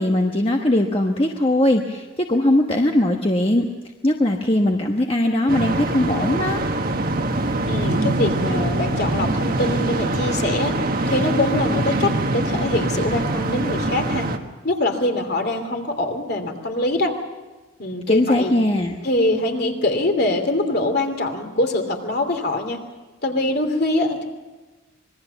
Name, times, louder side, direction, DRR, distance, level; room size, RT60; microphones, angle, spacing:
voice 1, 0.0-3.6 4.0-6.6 18.1-18.9, left 1 dB, 25° left, 2 dB, 1.2 m, -20 dB
sound 1, 5.5-14.4, right 2 dB, 45° right, 1.5 m, -23 dB
voice 2, 7.7-10.7 11.1-14.3 14.6-17.1 17.8-18.5 19.0-22.8 23.2-24.3, left 2 dB, 50° left, 5 dB, 2.9 m, -23 dB
26.0 x 21.0 x 7.1 m, 1.2 s
head